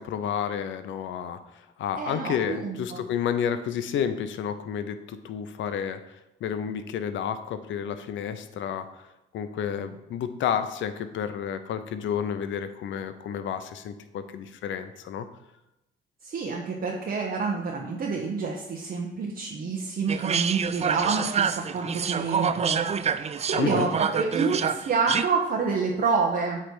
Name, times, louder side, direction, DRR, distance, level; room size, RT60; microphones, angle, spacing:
voice 1, 0.0-6.0 6.4-9.1 9.3-15.3 23.6-23.9, left 8 dB, 70° left, 10 dB, 0.7 m, -31 dB
voice 2, 2.0-3.0 16.2-26.6, right 4 dB, 50° right, -1 dB, 1.0 m, -28 dB
sound 1, 20.1-25.2, right 7 dB, 35° right, 0.4 m, -27 dB
8.3 x 3.3 x 6.1 m, 0.91 s
cardioid pair, 90°, 20 cm